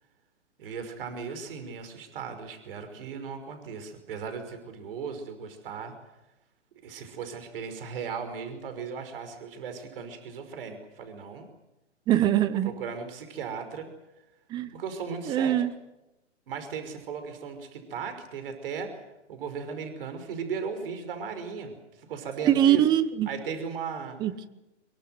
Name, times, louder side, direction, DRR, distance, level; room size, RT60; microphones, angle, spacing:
voice 1, 0.6-5.9 6.8-11.5 12.6-13.9 14.7-15.6 16.5-19.0 19.3-22.9 23.3-24.2, right 6 dB, 50° right, 8 dB, 5.5 m, -37 dB
voice 2, 12.1-12.7 14.5-14.7 15.3-15.7 22.4-23.3 24.2-24.5, right 11 dB, 10° right, 16 dB, 0.8 m, -22 dB
24.5 x 23.0 x 7.8 m, 0.96 s
hypercardioid pair, 150°, 36 cm